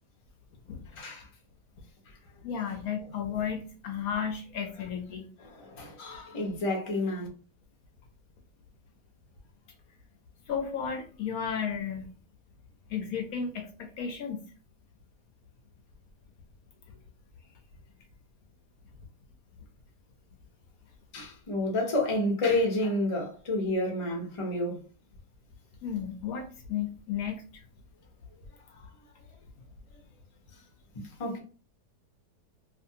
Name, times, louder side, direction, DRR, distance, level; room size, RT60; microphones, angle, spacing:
voice 1, 0.9-1.3 5.4-7.3 21.1-24.8 30.9-31.4, left 1 dB, 40° left, 0.4 m, -30 dB
voice 2, 2.4-5.3 10.5-12.1 12.9-14.4 16.9-17.0 25.8-27.6, left 7 dB, 70° left, 0.9 m, -33 dB
2.6 x 2.5 x 2.7 m
omnidirectional pair, 1.8 m